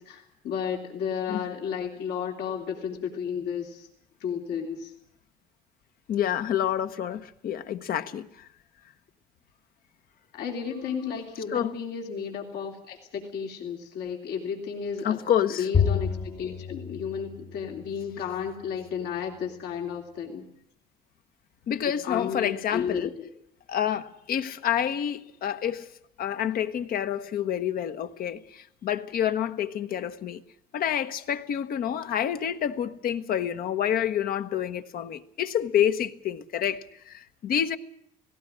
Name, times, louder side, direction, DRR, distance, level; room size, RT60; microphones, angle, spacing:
voice 1, 0.0-3.9 4.2-4.9 10.3-15.2 15.6-20.5 22.0-23.3, left 7 dB, 75° left, 3.2 m, -33 dB
voice 2, 6.1-8.5 11.5-11.7 15.0-15.7 21.7-23.1 23.7-25.9 26.2-30.4 30.7-37.8, left 9 dB, 60° left, 1.1 m, -28 dB
Bowed string instrument, 15.7-18.3, left 6 dB, 30° left, 1.0 m, -29 dB
18.0 x 17.5 x 9.9 m
cardioid pair, 110°, 17 cm